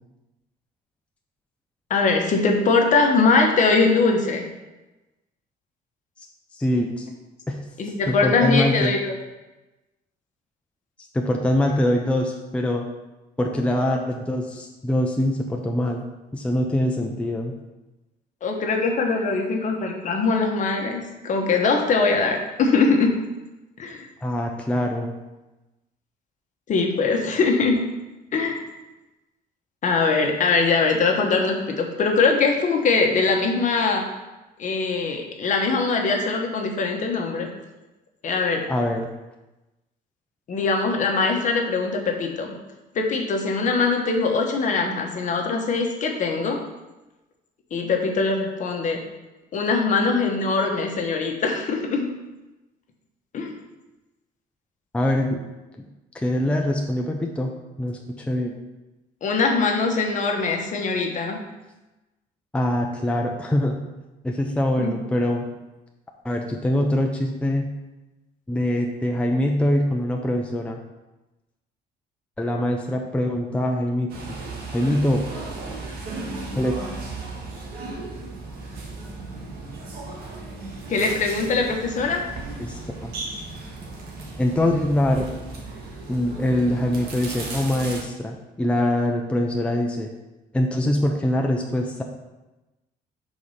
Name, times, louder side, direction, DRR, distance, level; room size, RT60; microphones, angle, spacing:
voice 1, 1.9-4.4 7.8-9.1 18.4-23.1 23.8-24.1 26.7-27.8 28.3-28.6 29.8-34.0 34.6-37.5 38.2-38.6 40.5-42.5 42.9-46.6 47.7-49.0 49.5-52.1 53.3-53.5 59.2-61.4 64.8-64.9 80.9-82.2, left 4 dB, 50° left, 2 dB, 1.1 m, -22 dB
voice 2, 6.5-7.1 7.5-7.6 8.1-8.9 11.1-12.9 13.4-16.0 16.3-17.5 24.2-25.1 38.7-39.1 54.9-55.4 56.1-57.5 57.8-58.5 62.5-63.7 64.2-65.5 66.2-67.7 68.5-70.8 72.4-74.1 74.7-75.2 76.5-76.8 82.6-83.1 84.4-85.3 86.1-90.1 90.5-92.0, left 1 dB, 5° left, 1 dB, 0.6 m, -23 dB
sound 1, 74.1-88.0, right 3 dB, 70° right, 1.5 m, -35 dB
4.8 x 4.0 x 5.6 m, 1.1 s
cardioid pair, 110°, 17 cm